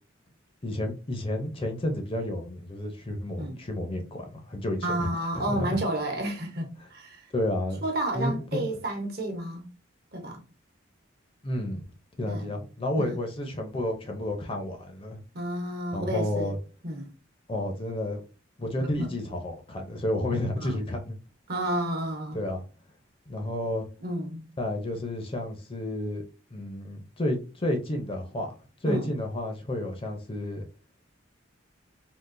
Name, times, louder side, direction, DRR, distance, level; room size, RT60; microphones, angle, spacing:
voice 1, 0.6-5.1 5.3-5.8 7.3-7.8 8.1-8.6 11.4-11.8 12.2-15.2 15.9-16.6 17.5-18.2 18.6-21.2 22.3-22.6 23.3-23.9 24.6-26.2 26.5-28.5 28.8-30.7, left 1 dB, 30° left, 0.6 m, -31 dB
voice 2, 4.8-7.3 7.8-9.7 10.1-10.4 12.3-12.5 13.0-13.1 15.3-16.6 16.8-17.1 18.8-19.1 20.6-20.8 21.5-22.4 24.0-24.4 28.8-29.1, right 1 dB, 55° right, 1.0 m, -31 dB
3.7 x 2.4 x 2.5 m
head